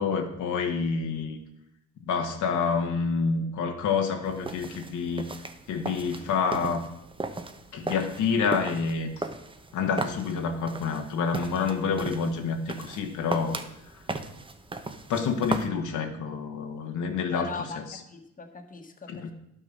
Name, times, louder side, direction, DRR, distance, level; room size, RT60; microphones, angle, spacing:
voice 1, 0.0-1.4 2.0-5.2 5.7-6.9 7.7-9.3 9.7-13.6 13.9-14.0 15.1-18.0 19.1-19.3, left 5 dB, 75° left, 4 dB, 1.3 m, -28 dB
sound 1, 4.2-15.7, right 3 dB, 15° right, 0.8 m, -37 dB
voice 2, 17.3-17.8 18.1-19.3, left 4 dB, 25° left, 5 dB, 1.4 m, -39 dB
11.0 x 6.2 x 5.3 m, 0.83 s
cardioid pair, 90°, 30 cm